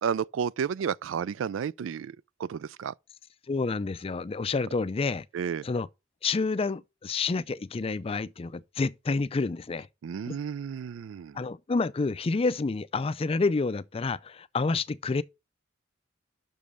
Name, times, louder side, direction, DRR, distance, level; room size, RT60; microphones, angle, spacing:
voice 1, 0.0-2.9 5.3-5.6 10.0-11.4, right 7 dB, 75° right, 0.3 m, -32 dB
voice 2, 3.5-5.3 5.6-5.9 6.2-9.9 11.3-15.2, left 4 dB, 30° left, 0.4 m, -29 dB
6.2 x 5.2 x 6.7 m
head